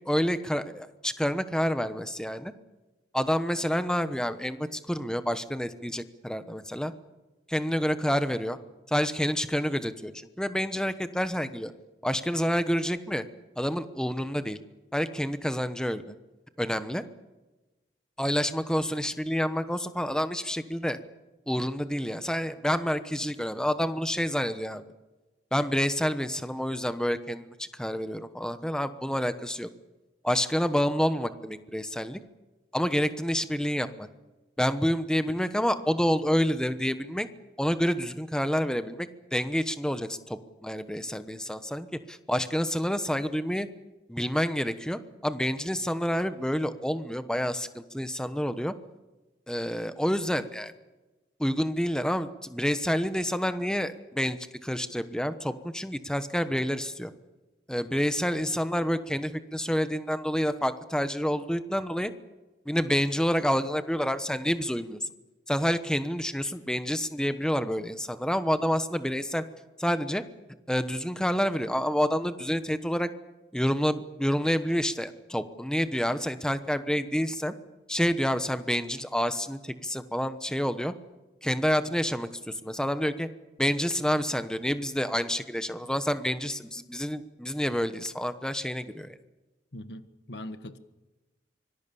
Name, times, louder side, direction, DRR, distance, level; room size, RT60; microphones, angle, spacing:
voice 1, 0.0-2.5 3.1-6.9 7.5-8.6 8.9-11.7 12.0-13.2 13.6-14.6 14.9-16.0 16.6-17.0 18.2-21.0 21.5-24.8 25.5-29.7 30.2-32.2 32.7-34.1 34.6-37.3 37.6-43.7 44.1-48.7 49.5-50.7 51.4-57.1 57.7-62.1 62.7-65.1 65.5-69.4 69.8-70.2 70.7-73.1 73.5-77.6 77.9-80.9 81.4-83.3 83.6-89.2, equal, 5° left, 1.0 m, -28 dB
voice 2, 89.7-90.8, left 1 dB, 70° left, 1.5 m, -41 dB
25.0 x 19.5 x 7.0 m
head